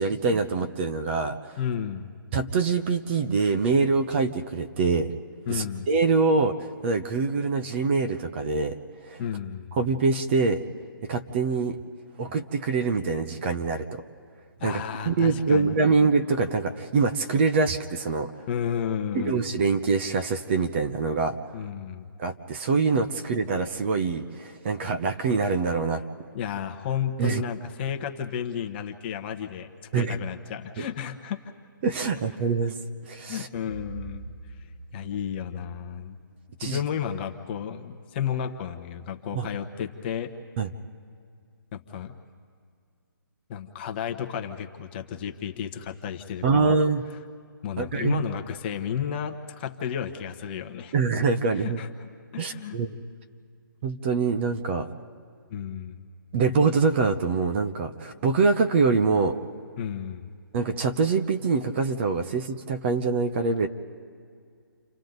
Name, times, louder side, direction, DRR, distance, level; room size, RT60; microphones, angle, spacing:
voice 1, 0.0-1.4 2.3-5.1 5.5-6.5 6.8-8.7 9.1-9.2 9.7-10.6 11.1-11.8 12.2-14.0 14.6-18.3 19.1-21.4 22.2-26.0 27.2-27.4 29.9-30.1 30.8-30.9 31.8-32.8 33.1-33.5 36.6-36.8 39.3-39.5 40.6-40.7 46.4-47.0 47.8-48.2 50.9-51.8 52.4-53.0 53.8-54.9 56.3-59.4 60.5-63.7, right 4 dB, 30° right, 7 dB, 0.9 m, -24 dB
voice 2, 1.6-2.1 5.5-5.9 9.2-9.8 14.6-15.9 18.5-19.4 21.5-22.1 26.3-31.4 33.3-36.2 36.6-40.3 41.7-42.1 43.5-46.8 47.6-50.9 51.6-51.9 52.3-52.8 55.5-56.1 59.8-60.3, left 8 dB, 25° left, 6 dB, 1.1 m, -32 dB
29.5 x 26.0 x 4.0 m, 2.3 s
hypercardioid pair, 155°, 12 cm